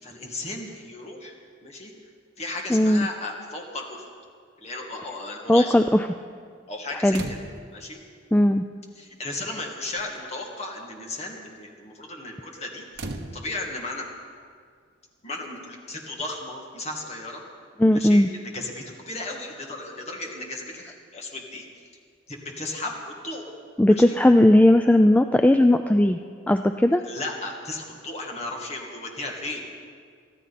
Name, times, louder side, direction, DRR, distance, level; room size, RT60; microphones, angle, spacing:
voice 1, 0.0-1.4 1.6-1.9 2.4-4.0 4.6-5.8 6.7-7.4 7.7-8.0 9.0-14.1 15.2-17.4 17.9-21.6 22.3-23.5 23.8-24.2 26.9-29.7, left 2 dB, 35° left, 0 dB, 2.1 m, -35 dB
voice 2, 2.7-3.1 5.5-6.0 7.0-7.2 8.3-8.6 17.8-18.3 23.8-26.2 26.5-27.0, left 1 dB, 10° left, 7 dB, 0.3 m, -17 dB
sound 1, 7.1-7.8 8.9-9.0 9.4-9.7 10.0-10.3 12.9-13.9 15.4-15.5, right 2 dB, 65° right, 1.1 m, -37 dB
24.0 x 14.0 x 4.2 m, 2.1 s
head